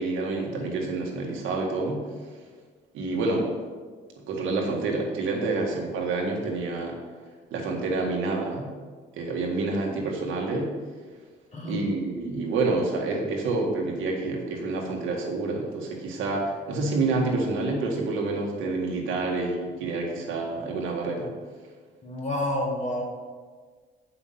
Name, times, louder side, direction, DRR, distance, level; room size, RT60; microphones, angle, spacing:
voice 1, 0.0-2.0 2.9-3.5 4.3-7.0 7.5-8.7 9.2-10.7 11.6-21.3, right 3 dB, 90° right, 0 dB, 1.7 m, -28 dB
voice 2, 11.5-11.9 22.0-23.0, left 1 dB, 35° left, -1 dB, 2.3 m, -29 dB
7.2 x 5.9 x 5.7 m, 1.5 s
cardioid pair, 90°, 20 cm